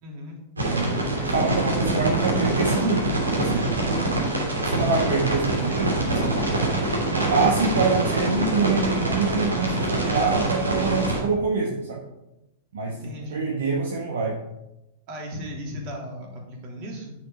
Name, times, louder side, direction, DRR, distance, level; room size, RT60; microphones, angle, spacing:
voice 1, 0.0-0.4 12.9-13.5 15.1-17.1, equal, 45° right, 0 dB, 3.1 m, -36 dB
voice 2, 0.6-3.7 4.6-6.4 7.2-12.0 12.7-14.4, right 4 dB, 65° right, 0 dB, 1.4 m, -25 dB
sound 1, 0.6-11.2, right 2 dB, 80° right, 3.0 m, -25 dB
9.7 x 6.3 x 5.1 m, 0.92 s
figure-of-eight pair, 100°, 0 cm